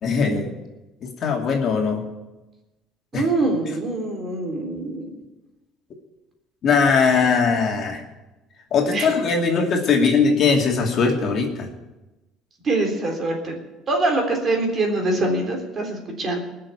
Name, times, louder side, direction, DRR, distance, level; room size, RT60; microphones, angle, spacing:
voice 1, 0.0-0.5 1.0-2.0 3.1-3.2 6.6-8.0 8.7-11.7, left 5 dB, 40° left, 1 dB, 2.6 m, -20 dB
voice 2, 3.1-5.1 8.9-9.1 12.6-13.5 13.9-16.4, right 2 dB, 30° right, 2 dB, 3.5 m, -24 dB
20.0 x 6.8 x 9.7 m, 1.1 s
cardioid pair, 145°, 0 cm